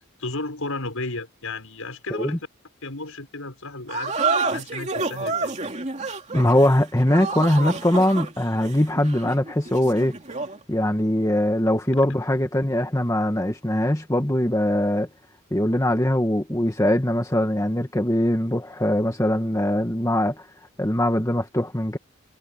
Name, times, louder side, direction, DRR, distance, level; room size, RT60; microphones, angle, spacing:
voice 1, 0.2-2.4 2.8-5.6, left 2 dB, 75° left, 5.9 m, -33 dB
sound 1, 3.9-10.6, right 4 dB, 30° right, 2.8 m, -29 dB
voice 2, 6.3-10.1 10.7-15.1 15.5-20.5 20.8-22.0, left 1 dB, 15° left, 1.5 m, -22 dB
head